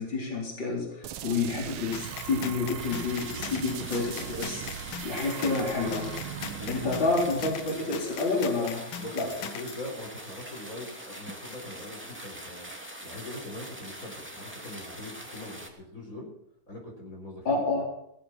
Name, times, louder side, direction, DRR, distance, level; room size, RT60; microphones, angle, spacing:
voice 1, 0.0-4.6 5.0-6.1 6.7-8.8 9.1-9.3 17.4-17.8, left 3 dB, 60° left, -1 dB, 4.8 m, -29 dB
sound 1, 1.0-8.6, right 10 dB, 80° right, 1.8 m, -40 dB
sound 2, 1.9-9.8, left 8 dB, 75° left, 1.8 m, -40 dB
sound 3, 2.8-15.7, right 1 dB, 5° right, 2.3 m, -43 dB
voice 2, 6.5-7.0 8.9-12.7 13.0-16.3 16.7-17.6, left 1 dB, 40° left, -1 dB, 4.4 m, -42 dB
18.0 x 14.5 x 4.4 m, 0.81 s
omnidirectional pair, 2.3 m